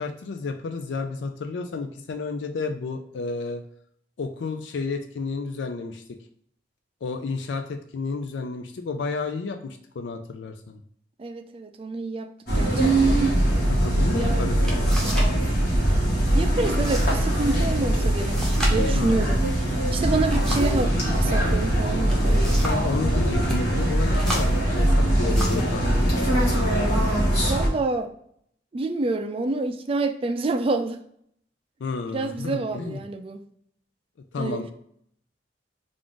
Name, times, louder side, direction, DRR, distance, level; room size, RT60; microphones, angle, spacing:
voice 1, 0.0-3.6 4.2-6.0 7.0-10.8 13.7-15.0 18.9-19.3 19.6-19.8 22.6-26.2 31.8-33.0 34.3-34.7, left 4 dB, 80° left, 6 dB, 0.4 m, -31 dB
voice 2, 11.2-12.3 12.6-13.3 14.1-14.4 16.3-19.4 19.9-22.4 27.5-28.1 28.7-31.0 32.1-33.4 34.4-34.6, right 3 dB, 30° right, 6 dB, 0.4 m, -28 dB
sound 1, 12.5-27.7, right 1 dB, 60° left, 1.6 m, -22 dB
sound 2, 14.1-14.2 14.6-15.4 15.6-16.1 16.6-17.2 17.5-17.6 18.2-20.9 21.8-22.9 23.3-23.6 24.1-25.8 26.5-26.7 27.3-27.8, equal, 5° left, 0.8 m, -34 dB
3.6 x 2.5 x 3.7 m, 0.66 s
head